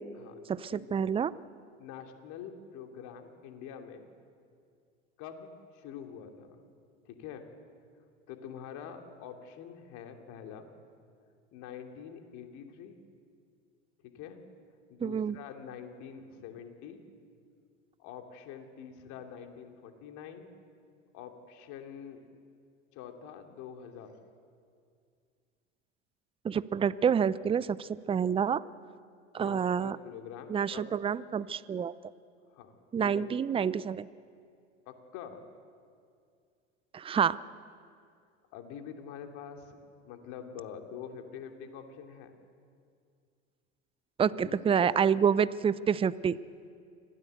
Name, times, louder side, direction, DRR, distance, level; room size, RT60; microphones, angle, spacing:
voice 1, 0.5-1.3 15.0-15.4 26.4-28.6 29.3-30.0 30.5-31.9 32.9-34.1 36.9-37.4 44.2-46.4, right 7 dB, 15° right, 19 dB, 0.6 m, -28 dB
voice 2, 1.8-4.1 5.2-6.6 7.0-7.5 8.3-10.7 11.5-13.0 14.0-14.4 14.9-17.0 18.0-20.5 21.1-22.2 22.9-24.2 29.4-30.9 32.5-32.7 33.0-33.3 34.9-35.4 38.5-39.8 40.0-42.3 44.3-45.3, left 8 dB, 55° left, 4 dB, 2.8 m, -45 dB
25.5 x 17.0 x 8.0 m, 2.3 s
hypercardioid pair, 80°, 35 cm